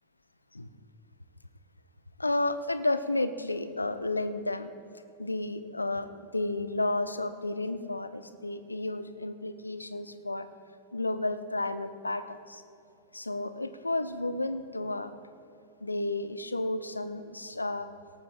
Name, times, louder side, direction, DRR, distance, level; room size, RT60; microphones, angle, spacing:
voice 1, 2.2-4.7 5.2-10.5 10.9-12.6 13.1-15.1 15.8-17.9, left 2 dB, 80° left, 12 dB, 0.6 m, -32 dB
22.5 x 18.0 x 2.3 m, 2.7 s
figure-of-eight pair, 90°, 0 cm